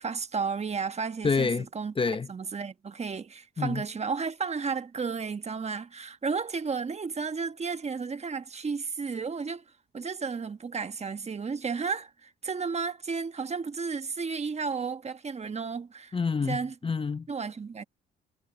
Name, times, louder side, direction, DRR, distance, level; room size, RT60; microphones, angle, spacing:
voice 1, 0.0-1.9 2.3-9.6 9.9-16.2 16.5-16.7 17.3-17.8, right 5 dB, 35° right, 1.3 m, -33 dB
voice 2, 1.2-1.7 2.0-2.3 3.6-3.8 16.1-17.3, left 5 dB, 25° left, 0.9 m, -27 dB
cardioid pair, 90°, 20 cm